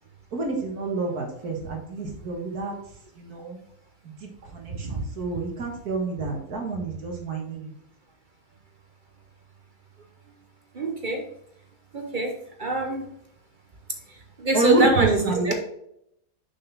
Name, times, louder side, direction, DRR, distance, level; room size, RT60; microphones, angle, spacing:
voice 1, 0.3-2.7 3.2-3.6 4.0-7.7 14.5-15.5, right 3 dB, 70° right, 1 dB, 2.0 m, -28 dB
voice 2, 10.7-11.3 11.9-13.1 14.4-15.5, right 2 dB, 45° right, 4 dB, 0.7 m, -25 dB
6.2 x 5.9 x 3.4 m, 0.74 s
omnidirectional pair, 1.7 m